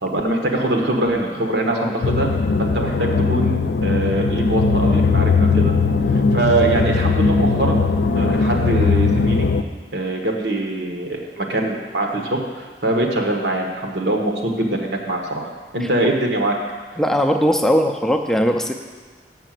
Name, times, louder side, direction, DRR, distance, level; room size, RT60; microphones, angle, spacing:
voice 1, 0.0-2.3 2.6-5.7 6.3-7.8 8.2-9.5 9.9-16.5, right 2 dB, 80° right, 1 dB, 1.4 m, -23 dB
sound 1, 2.0-9.6, left 4 dB, 75° left, 0.4 m, -19 dB
voice 2, 17.0-18.7, equal, 5° left, 3 dB, 0.4 m, -19 dB
7.5 x 5.7 x 7.6 m, 1.4 s
head